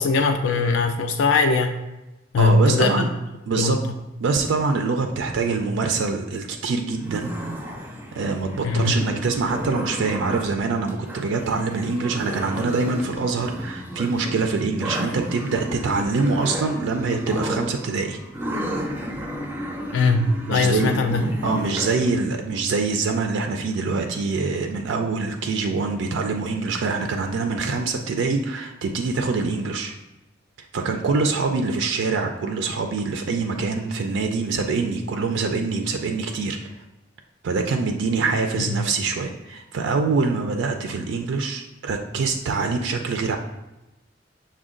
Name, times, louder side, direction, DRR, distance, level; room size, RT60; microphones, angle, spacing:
voice 1, 0.0-1.7 2.3-3.1 3.6-3.8 8.6-9.0 19.9-21.3 38.6-38.7, left 3 dB, 75° left, 5 dB, 0.4 m, -20 dB
voice 2, 2.4-3.1 3.5-3.8 4.2-7.3 8.2-18.2 20.5-21.2 21.4-29.9 30.7-36.6 37.4-43.4, right 4 dB, 80° right, 4 dB, 0.4 m, -24 dB
sound 1, 6.9-22.1, equal, 10° right, 0.5 m, -33 dB
6.0 x 2.2 x 3.6 m, 0.99 s
head